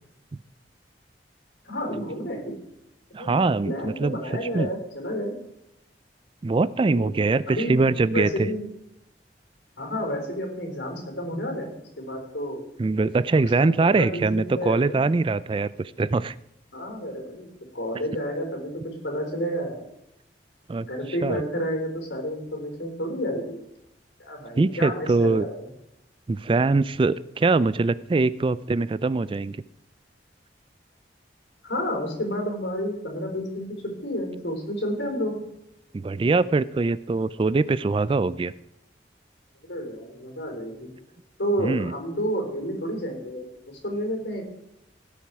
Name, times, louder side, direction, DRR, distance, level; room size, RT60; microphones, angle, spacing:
voice 1, 1.7-2.5 3.2-3.3 3.6-5.3 6.9-7.1 7.5-8.6 9.8-11.7 12.0-12.7 13.4-15.1 16.7-17.5 17.7-18.7 19.0-19.9 20.8-23.6 24.2-25.7 31.6-33.7 34.0-35.4 39.7-40.9 41.4-44.4, equal, 80° left, 2 dB, 4.3 m, -30 dB
voice 2, 3.1-4.2 4.5-4.7 6.4-8.5 12.8-16.3 20.7-20.9 21.2-21.4 24.6-25.5 26.3-29.6 36.0-38.5 41.6-41.9, right 3 dB, 30° right, 18 dB, 0.3 m, -23 dB
17.5 x 7.1 x 4.8 m, 0.85 s
head